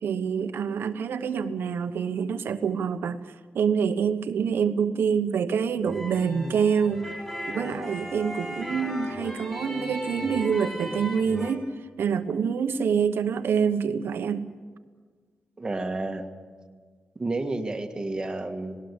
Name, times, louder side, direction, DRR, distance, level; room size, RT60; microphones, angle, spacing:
voice 1, 0.0-3.2 3.5-7.1 7.5-11.7 12.0-14.5, right 6 dB, 80° right, 9 dB, 1.1 m, -26 dB
sound 1, 5.8-11.5, equal, 15° left, 6.8 m, -36 dB
voice 2, 15.6-16.2 17.1-18.8, right 2 dB, 20° right, 5 dB, 1.7 m, -30 dB
19.0 x 18.5 x 8.3 m, 1.6 s
wide cardioid pair, 125°, 4 cm